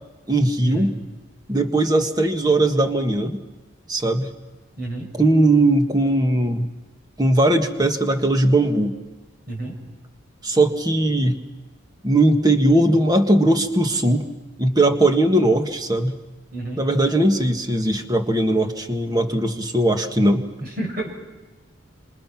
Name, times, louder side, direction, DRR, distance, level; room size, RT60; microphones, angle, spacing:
voice 1, 0.3-0.9 1.5-3.4 3.9-4.3 5.1-6.7 7.2-9.0 10.4-11.4 12.0-14.2 14.6-16.2 16.8-20.4, right 1 dB, 20° right, 5 dB, 1.7 m, -19 dB
voice 2, 4.8-5.1 9.5-9.8 16.5-16.8 20.6-21.1, right 1 dB, 45° right, 1 dB, 6.9 m, -29 dB
28.5 x 27.0 x 6.0 m, 1.2 s
head